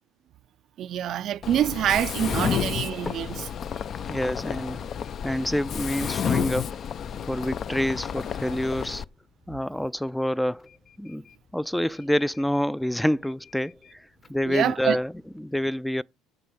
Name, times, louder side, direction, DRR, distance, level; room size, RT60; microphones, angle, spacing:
voice 1, 0.8-3.5 14.5-15.0, right 11 dB, 55° right, 0.5 m, -26 dB
sound 1, 1.0-15.4, left 3 dB, 25° left, 1.0 m, -48 dB
Mechanisms, 1.4-9.0, left 8 dB, 45° left, 0.6 m, -31 dB
voice 2, 4.1-4.8 5.2-6.8 7.3-9.0 9.5-10.7 11.0-11.2 11.5-15.1 15.4-16.0, equal, 5° left, 0.4 m, -27 dB
7.4 x 6.8 x 7.1 m
supercardioid pair, 85°, 0 cm